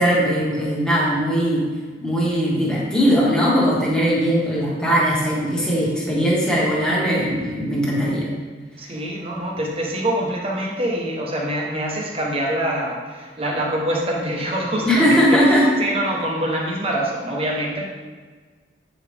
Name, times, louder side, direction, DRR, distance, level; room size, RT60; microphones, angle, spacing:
voice 1, 0.0-1.6 2.0-8.3 14.8-15.6, equal, 5° left, -6 dB, 1.7 m, -19 dB
voice 2, 8.8-17.8, right 1 dB, 30° right, -1 dB, 1.2 m, -25 dB
8.4 x 5.0 x 3.5 m, 1.4 s
head